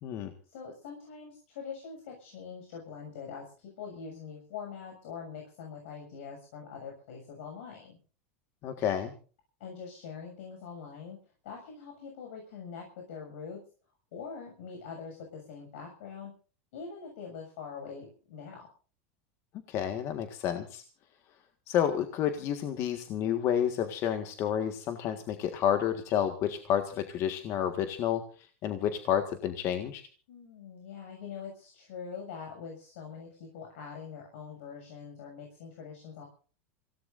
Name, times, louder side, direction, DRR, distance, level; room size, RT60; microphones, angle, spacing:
voice 1, 0.5-8.0 9.6-11.2 11.4-13.6 14.1-16.3 16.7-18.7 30.3-36.3, left 6 dB, 75° left, 2 dB, 6.8 m, -43 dB
voice 2, 8.6-9.1 19.7-20.8 21.7-28.2 28.6-30.0, left 9 dB, 45° left, 7 dB, 1.7 m, -30 dB
27.5 x 17.5 x 2.6 m, 0.39 s
supercardioid pair, 135°, 7 cm